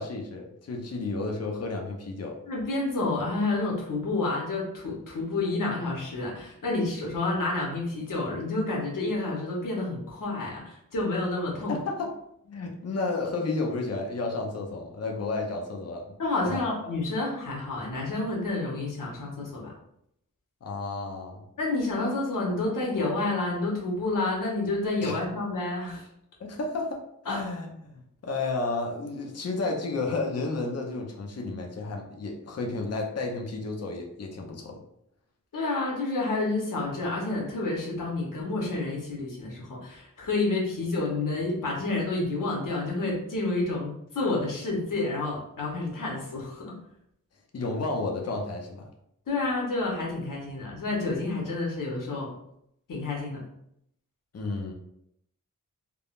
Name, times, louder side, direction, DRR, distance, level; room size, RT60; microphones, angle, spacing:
voice 1, 0.0-2.4 11.7-12.1 12.4-16.1 16.4-16.6 20.6-21.4 25.0-25.1 26.4-27.0 27.3-34.8 47.5-48.9 54.3-54.7, left 3 dB, 50° left, 1 dB, 0.6 m, -32 dB
voice 2, 2.5-11.8 16.2-19.7 21.6-26.1 27.3-27.4 35.5-46.8 49.3-52.3 52.9-53.4, left 2 dB, 70° left, -3 dB, 1.0 m, -29 dB
3.5 x 2.0 x 2.4 m, 0.75 s
wide cardioid pair, 70°, 33 cm